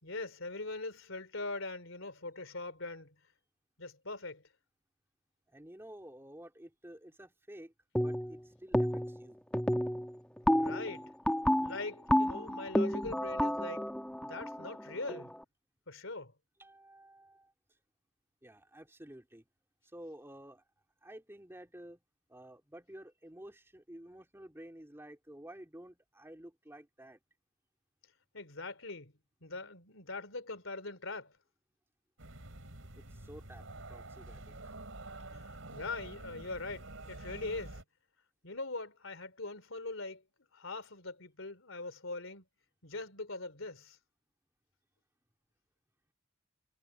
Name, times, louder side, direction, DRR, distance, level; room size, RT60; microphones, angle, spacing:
voice 1, 0.0-3.1 3.8-4.4 10.6-11.1 11.6-13.9 14.2-15.4 15.9-16.3 28.3-29.1 29.4-31.3 35.3-37.8 38.4-40.2 40.5-42.4 42.8-44.0, left 3 dB, 75° left, 3.6 m, -42 dB
voice 2, 5.5-9.4 16.6-17.5 18.4-19.4 19.9-20.6 21.0-22.0 22.3-27.2 33.0-34.7, right 1 dB, 10° right, 3.1 m, -52 dB
sound 1, 8.0-8.4 8.7-9.2 9.5-15.4, equal, 5° left, 1.2 m, -31 dB
sound 2, 32.2-37.8, right 2 dB, 80° right, 4.1 m, -48 dB
head